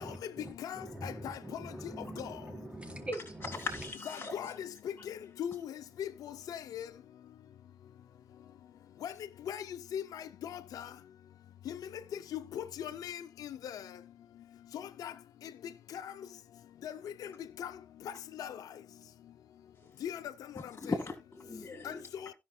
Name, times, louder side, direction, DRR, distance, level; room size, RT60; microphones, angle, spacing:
voice 1, 0.0-3.9, right 1 dB, 20° right, 4.5 m, -43 dB
voice 2, 0.6-1.4 2.2-2.3 4.1-6.9 9.0-9.1 9.5-10.9 11.7-11.8 12.3-13.8 14.7-15.1 15.9-16.1 16.8-17.3 17.6-17.7 18.4-18.6 20.0-20.2 20.9-21.0 21.8-22.3, left 9 dB, 90° left, 0.5 m, -40 dB
voice 3, 3.6-4.4 19.8-20.0 20.6-22.0, left 3 dB, 35° left, 1.9 m, -39 dB
16.5 x 5.7 x 2.3 m
supercardioid pair, 45°, 6 cm